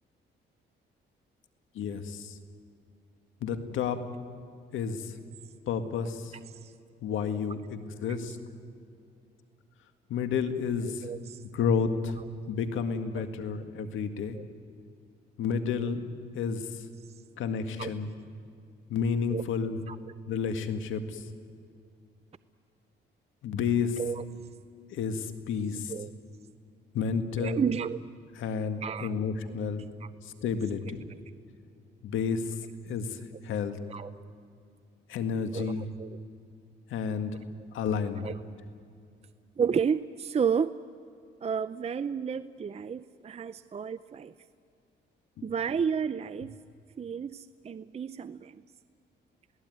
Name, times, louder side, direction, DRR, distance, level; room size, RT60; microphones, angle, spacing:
voice 1, 1.8-2.3 3.4-4.0 4.7-5.1 5.7-6.3 7.0-8.4 10.1-11.0 11.5-12.1 12.5-14.4 15.4-16.0 16.3-16.6 17.4-18.1 18.9-19.8 20.3-21.2 23.4-24.0 24.9-25.9 26.9-27.6 28.4-29.9 30.2-31.0 32.0-32.5 32.9-33.8 35.1-35.8 36.9-37.3 37.7-38.3, left 6 dB, 80° left, 8 dB, 1.9 m, -30 dB
voice 2, 11.0-11.4 13.1-13.3 14.3-14.4 15.8-15.9 17.1-17.2 17.8-17.9 19.3-19.4 19.9-20.1 24.0-24.2 25.9-26.1 27.4-28.0 28.8-29.2 30.0-30.1 33.9-34.1 35.5-36.2 38.2-38.4 39.6-40.8 41.4-44.3 45.4-46.5 47.0-48.6, right 6 dB, 30° right, 13 dB, 0.6 m, -32 dB
28.0 x 18.0 x 9.4 m, 2.4 s
cardioid pair, 90°, 20 cm